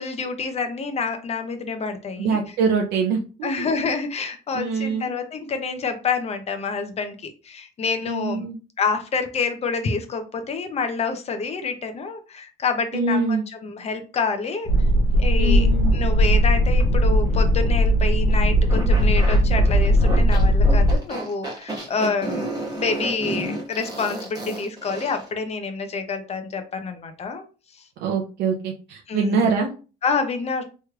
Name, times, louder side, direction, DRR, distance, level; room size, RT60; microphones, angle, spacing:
voice 1, 0.0-2.4 3.4-8.4 8.8-14.7 15.2-15.7 15.9-22.5 22.8-27.4 27.7-27.8 29.1-29.5 30.0-30.6, left 4 dB, 40° left, 7 dB, 0.7 m, -27 dB
voice 2, 2.2-3.5 4.5-5.1 8.1-8.6 12.9-13.4 15.4-15.9 28.0-29.7, right 5 dB, 85° right, 0 dB, 0.6 m, -24 dB
sound 1, 14.7-21.0, equal, 85° left, 0.7 m, -18 dB
sound 2, 18.7-25.3, right 1 dB, 20° right, 1.2 m, -31 dB
3.2 x 3.1 x 2.3 m, 0.33 s
cardioid pair, 110°, 17 cm